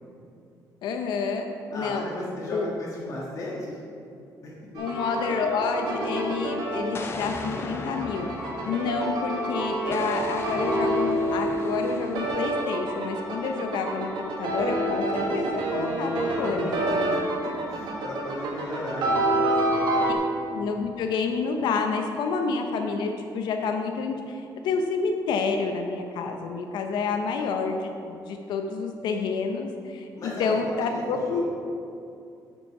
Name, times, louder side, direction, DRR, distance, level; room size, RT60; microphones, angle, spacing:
voice 1, 0.8-1.5 1.7-2.0 2.5-2.7 4.8-17.2 20.1-20.2 20.5-31.4, left 4 dB, 85° left, 4 dB, 0.6 m, -29 dB
voice 2, 1.7-3.8 4.4-4.9 16.9-20.1 30.2-31.4, left 1 dB, 50° left, -5 dB, 1.4 m, -36 dB
sound 1, 4.7-20.1, right 1 dB, 80° right, 1.4 m, -28 dB
Explosion, 6.9-9.4 9.9-12.5, left 3 dB, 35° left, 0.5 m, -38 dB
8.6 x 5.3 x 4.7 m, 2.5 s
cardioid pair, 155°, 7 cm